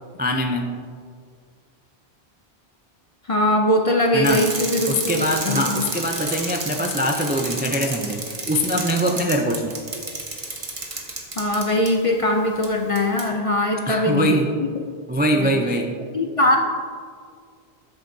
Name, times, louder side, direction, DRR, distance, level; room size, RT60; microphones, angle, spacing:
voice 1, 0.2-0.8 4.1-4.5 4.9-9.7 13.9-14.6 15.1-16.0, equal, 15° right, 3 dB, 0.3 m, -23 dB
voice 2, 3.3-5.9 11.4-14.4 15.4-15.6 16.1-16.6, left 1 dB, 45° left, 2 dB, 0.5 m, -21 dB
Bicycle, 4.2-11.9 12.6-12.7 12.9-13.3, right 2 dB, 35° right, 1.0 m, -31 dB
13.0 x 7.2 x 2.7 m, 2.1 s
omnidirectional pair, 1.1 m